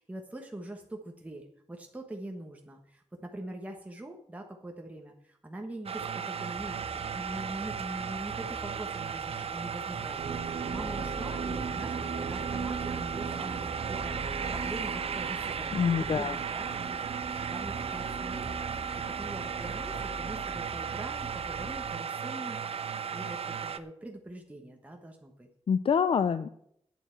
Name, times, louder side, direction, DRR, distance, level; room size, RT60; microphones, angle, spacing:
voice 1, 0.0-6.8 7.1-18.5 19.1-25.5, right 1 dB, 15° right, 2 dB, 1.2 m, -43 dB
sound 1, 5.9-23.8, right 7 dB, 60° right, 0.6 m, -36 dB
sound 2, 6.5-21.9, right 1 dB, 35° right, 2.4 m, -44 dB
sound 3, 10.2-21.3, right 6 dB, 75° right, 1.4 m, -41 dB
voice 2, 15.7-16.4 25.7-26.5, left 6 dB, 55° left, 12 dB, 0.4 m, -26 dB
9.1 x 7.8 x 7.8 m, 0.71 s
wide cardioid pair, 160°, 11 cm